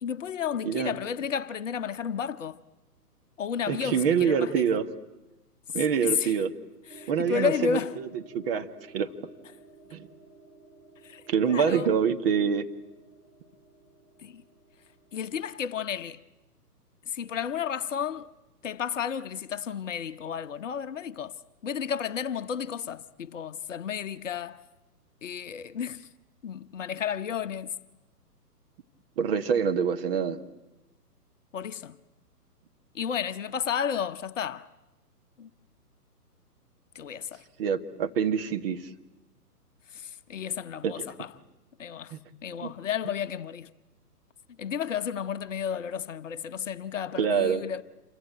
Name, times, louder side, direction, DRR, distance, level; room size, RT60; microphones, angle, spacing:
voice 1, 0.0-2.6 3.4-4.8 6.0-6.3 6.9-8.0 11.0-11.9 14.2-14.4 15.1-16.2 17.1-18.3 18.6-21.3 21.6-24.6 25.2-26.1 26.4-27.7 31.5-32.0 32.9-34.7 35.4-35.5 36.9-37.4 39.9-41.3 41.8-42.1 42.4-43.7 44.6-47.8, left 8 dB, 50° left, 0.9 m, -32 dB
voice 2, 0.6-0.9 3.7-4.9 5.7-6.5 7.1-8.1 8.3-8.7 8.9-9.1 9.9-10.1 11.3-12.6 29.2-30.4 37.6-38.9 40.8-41.0 42.1-42.2 42.6-42.7 47.2-47.6, right 7 dB, 35° right, 1.6 m, -26 dB
sound 1, 6.9-16.4, right 3 dB, 55° right, 7.3 m, -54 dB
27.5 x 23.5 x 9.0 m
figure-of-eight pair, 130°, 48 cm